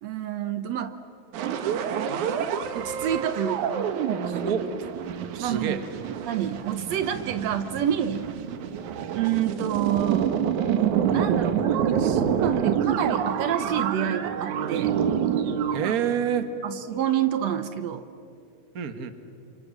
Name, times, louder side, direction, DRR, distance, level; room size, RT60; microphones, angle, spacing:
voice 1, 0.0-1.0 2.7-4.4 5.4-5.8 6.3-8.3 9.1-10.4 11.1-14.9 16.6-18.1, right 10 dB, 70° right, 11 dB, 2.0 m, -28 dB
sound 1, 1.3-16.0, right 8 dB, 85° right, 2.7 m, -27 dB
voice 2, 5.3-5.8 15.7-16.5 18.7-19.1, right 8 dB, 40° right, 9 dB, 1.4 m, -27 dB
29.5 x 27.0 x 7.5 m, 2.6 s
omnidirectional pair, 3.4 m